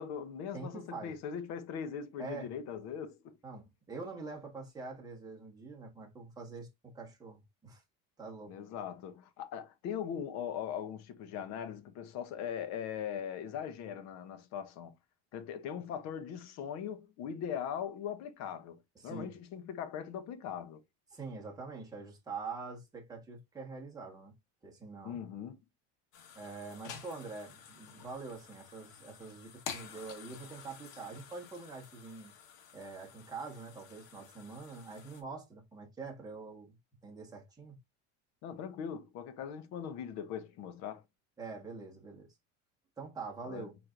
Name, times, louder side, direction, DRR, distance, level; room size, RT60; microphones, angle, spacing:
voice 1, 0.0-3.4 8.5-14.9 15.3-20.8 25.0-25.6 38.4-41.0 43.5-43.6, left 8 dB, 45° left, 0.8 m, -40 dB
voice 2, 0.5-1.1 2.2-2.5 3.4-7.8 8.2-8.6 18.9-19.3 21.1-24.3 24.6-25.2 26.3-32.3 32.7-36.7 37.0-37.8 41.4-42.3 43.0-43.8, right 4 dB, 10° right, 1.4 m, -45 dB
sound 1, 26.1-35.2, left 7 dB, 70° left, 1.4 m, -50 dB
4.4 x 4.3 x 2.5 m
cardioid pair, 160°, 35 cm